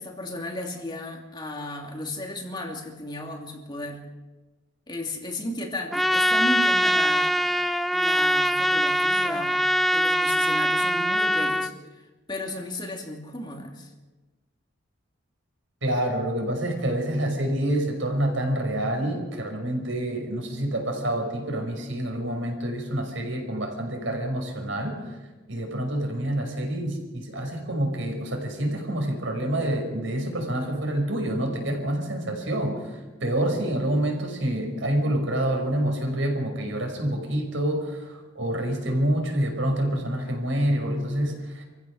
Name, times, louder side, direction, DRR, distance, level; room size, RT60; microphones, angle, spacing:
voice 1, 0.0-4.0 4.9-7.3 7.9-13.9, left 1 dB, 20° left, 1 dB, 2.8 m, -34 dB
Trumpet, 5.9-11.7, equal, ahead, 0.6 m, -22 dB
voice 2, 15.8-25.0 25.5-41.6, right 1 dB, 70° right, 3 dB, 5.6 m, -27 dB
27.0 x 15.5 x 6.5 m, 1.2 s
head